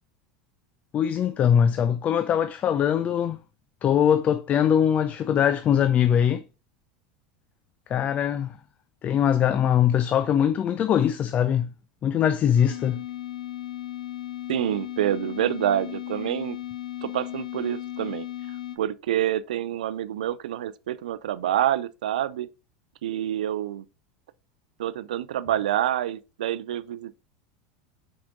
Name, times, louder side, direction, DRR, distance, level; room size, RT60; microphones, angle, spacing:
voice 1, 0.9-3.4 3.8-6.4 7.9-8.6 9.0-11.7 12.0-13.0, left 9 dB, 35° left, 0.5 m, -22 dB
sound 1, 12.5-18.8, left 13 dB, 85° left, 1.0 m, -36 dB
voice 2, 14.5-16.6 17.0-18.3 18.8-22.5 23.0-23.8 24.8-27.2, right 11 dB, 90° right, 0.5 m, -27 dB
5.9 x 4.9 x 3.8 m
supercardioid pair, 115°, 4 cm